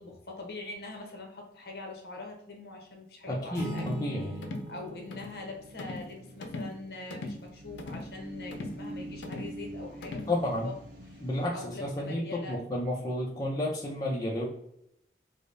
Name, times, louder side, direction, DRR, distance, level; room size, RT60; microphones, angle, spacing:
voice 1, 0.0-4.4 4.7-10.8 11.1-11.2 11.5-12.6, left 3 dB, 60° left, 1 dB, 0.8 m, -43 dB
voice 2, 3.3-4.3 10.3-10.7 11.2-14.5, left 1 dB, 20° left, -3 dB, 0.4 m, -31 dB
sound 1, 3.5-6.3, equal, 40° left, 1.2 m, -41 dB
sound 2, 3.8-4.1 4.4-4.7 5.1-5.4 5.8-6.1 6.4-6.8 7.1-7.4 7.8-8.1 8.5-8.8 9.2-9.6 10.0-10.4, left 2 dB, 85° left, 0.5 m, -39 dB
sound 3, 4.4-11.5, right 1 dB, 50° right, 0.7 m, -46 dB
4.8 x 2.0 x 2.6 m, 0.77 s
head